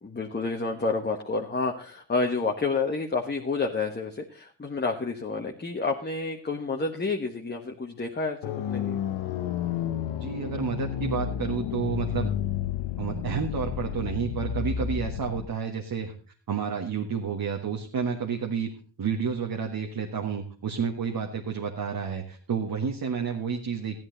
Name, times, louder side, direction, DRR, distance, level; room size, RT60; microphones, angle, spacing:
voice 1, 0.0-9.0, left 3 dB, 25° left, 2 dB, 1.3 m, -29 dB
sound 1, 8.4-15.4, left 9 dB, 90° left, 1.0 m, -31 dB
voice 2, 10.2-12.3 13.0-16.1 16.5-24.0, right 6 dB, 50° right, 2 dB, 1.6 m, -30 dB
14.0 x 10.5 x 3.9 m, 0.38 s
cardioid pair, 80°, 43 cm